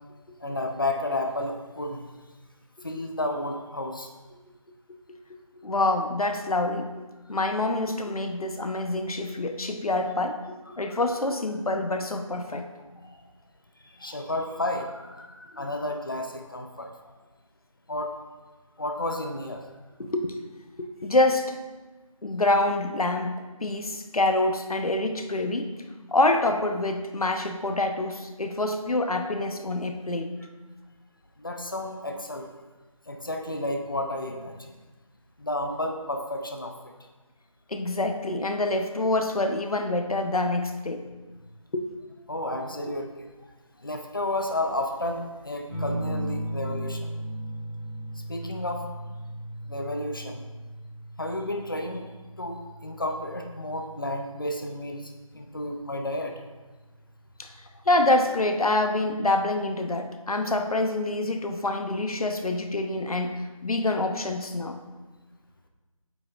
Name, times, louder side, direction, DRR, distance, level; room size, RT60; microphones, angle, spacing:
voice 1, 0.4-2.0 2.8-4.1 10.7-10.8 12.6-12.7 13.0-13.1 13.8-16.9 17.9-18.1 18.8-19.6 31.4-32.5 33.1-34.7 35.4-36.7 42.3-43.3 43.8-47.1 48.3-48.8 49.7-50.4 51.2-52.1 52.4-56.3, left 1 dB, 40° left, 4 dB, 0.6 m, -32 dB
voice 2, 5.6-6.9 7.3-10.4 10.8-12.7 20.0-20.4 20.8-21.5 22.2-25.7 26.1-30.3 37.7-41.0 41.7-41.8 57.4-57.5 57.9-63.4 63.6-64.8, left 2 dB, 90° left, 5 dB, 0.9 m, -26 dB
sound 1, 45.7-54.8 56.2-56.8, right 1 dB, 5° right, 1.2 m, -36 dB
8.5 x 6.2 x 2.5 m, 1.2 s
figure-of-eight pair, 175°, 18 cm